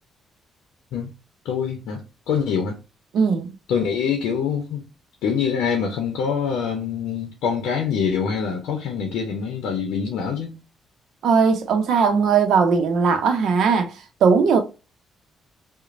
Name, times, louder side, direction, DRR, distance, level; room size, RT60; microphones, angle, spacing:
voice 1, 1.4-2.8 3.7-4.8 5.2-10.6, left 6 dB, 90° left, 0.6 m, -25 dB
voice 2, 3.1-3.5 11.2-14.6, right 5 dB, 75° right, 0.6 m, -19 dB
3.0 x 2.1 x 2.4 m
cardioid pair, 90°, 0 cm